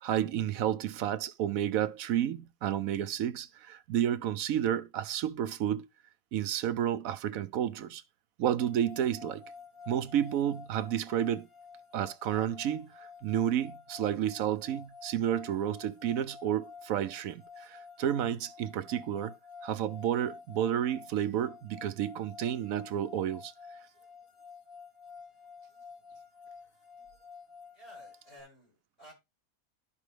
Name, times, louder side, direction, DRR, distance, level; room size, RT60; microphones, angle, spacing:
voice 1, 0.0-5.9 6.3-8.0 8.4-9.4 9.9-11.5 11.9-19.3 19.6-23.5, right 10 dB, 75° right, 1.0 m, -31 dB
sound 1, 8.6-28.4, left 5 dB, 45° left, 1.7 m, -50 dB
voice 2, 27.7-29.1, right 1 dB, 25° left, 6.5 m, -54 dB
12.5 x 5.3 x 3.3 m
omnidirectional pair, 1.5 m